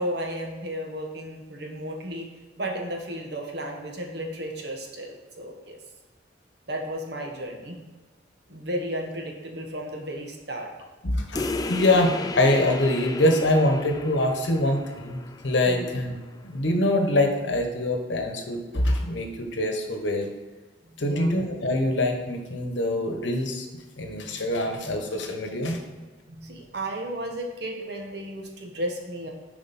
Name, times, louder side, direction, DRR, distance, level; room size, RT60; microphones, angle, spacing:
voice 1, 0.0-2.3 2.6-5.8 6.7-7.8 8.5-10.7 15.6-15.9 20.8-21.4 24.0-24.4 24.8-24.9 25.6-25.7 26.3-29.3, right 1 dB, 60° right, 1 dB, 1.2 m, -34 dB
voice 2, 11.0-16.2 16.4-20.3 21.0-23.7 24.0-25.8, left 1 dB, 75° left, 4 dB, 1.1 m, -24 dB
sound 1, 11.3-16.4, left 3 dB, 20° left, 0.3 m, -34 dB
7.2 x 5.0 x 4.2 m, 1.3 s
head